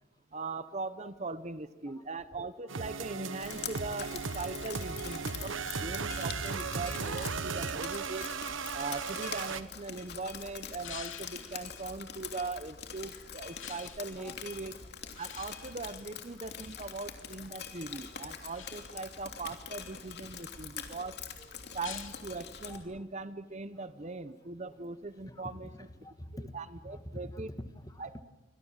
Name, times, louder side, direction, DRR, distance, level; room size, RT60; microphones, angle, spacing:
voice 1, 0.3-5.5 5.8-8.3 8.7-14.8 15.2-21.2 21.7-25.7 26.5-27.5 28.0-28.2, right 3 dB, 35° right, 13 dB, 0.8 m, -40 dB
sound 1, 2.7-9.6, right 5 dB, 75° right, 1.2 m, -36 dB
Drip, 3.4-22.8, left 7 dB, 55° left, 2.9 m, -44 dB
sound 2, 7.5-10.1 10.8-11.8 13.6-14.1 15.2-17.0 18.5-19.1 19.6-20.6 21.8-22.3, left 9 dB, 75° left, 2.6 m, -49 dB
voice 2, 25.3-26.5 26.9-28.2, left 1 dB, 20° left, 10 dB, 1.3 m, -46 dB
29.0 x 24.5 x 7.4 m, 1.2 s
head